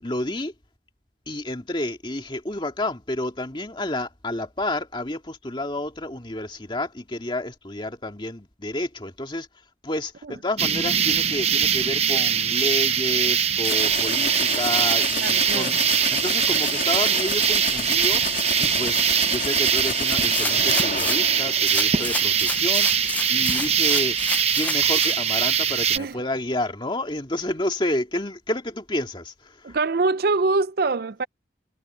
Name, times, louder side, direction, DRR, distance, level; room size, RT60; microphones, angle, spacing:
voice 1, 0.0-0.5 1.3-9.5 9.8-15.8 16.1-29.8, left 1 dB, 25° left, 2.2 m, -30 dB
sound 1, 10.6-26.0, right 8 dB, 35° right, 0.8 m, -22 dB
sound 2, 13.6-22.2, left 5 dB, 50° left, 1.9 m, -31 dB
voice 2, 15.2-15.7 26.0-26.1 29.6-31.3, right 3 dB, 55° right, 0.5 m, -24 dB
sound 3, 20.3-21.3 21.6-25.2 25.7-25.8, left 3 dB, 10° left, 0.4 m, -31 dB
head